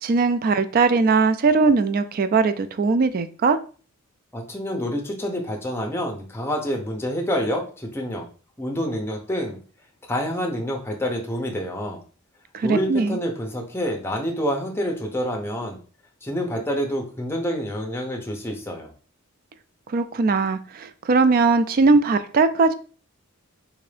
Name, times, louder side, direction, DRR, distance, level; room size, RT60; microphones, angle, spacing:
voice 1, 0.0-3.6 12.5-13.2 19.9-22.7, right 4 dB, 40° right, 11 dB, 0.3 m, -20 dB
voice 2, 4.3-8.3 8.6-9.6 10.1-12.0 12.6-15.8 16.2-18.9, equal, 10° left, 1 dB, 0.7 m, -27 dB
3.7 x 2.6 x 3.3 m, 0.39 s
head